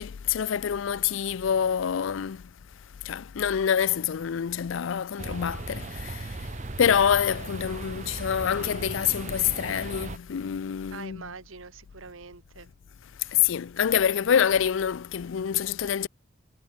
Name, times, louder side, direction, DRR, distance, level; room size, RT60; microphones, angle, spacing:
voice 1, 0.0-2.4 3.1-6.3 6.8-11.2 13.3-16.1, left 8 dB, 75° left, 0.4 m, -26 dB
sound 1, 5.2-10.2, right 3 dB, 35° right, 0.7 m, -37 dB
voice 2, 10.9-12.7 13.2-13.5, right 5 dB, 90° right, 1.3 m, -44 dB
head